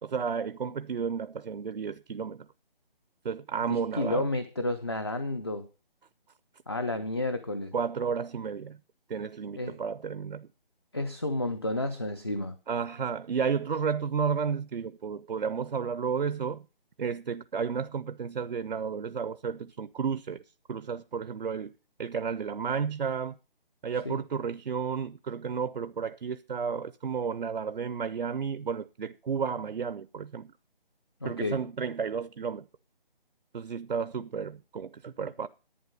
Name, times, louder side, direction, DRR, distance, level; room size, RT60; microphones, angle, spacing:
voice 1, 0.0-2.5 3.2-4.3 7.7-8.8 9.1-10.5 12.7-16.6 17.0-20.4 20.7-21.7 22.0-23.3 23.8-30.5 31.2-32.7 33.5-35.5, right 6 dB, 65° right, 0.6 m, -32 dB
voice 2, 3.7-5.7 6.7-7.7 9.6-9.8 10.9-12.5 24.0-24.2 31.2-31.6, left 2 dB, 25° left, 0.5 m, -31 dB
11.0 x 9.1 x 5.3 m
figure-of-eight pair, 170°, 29 cm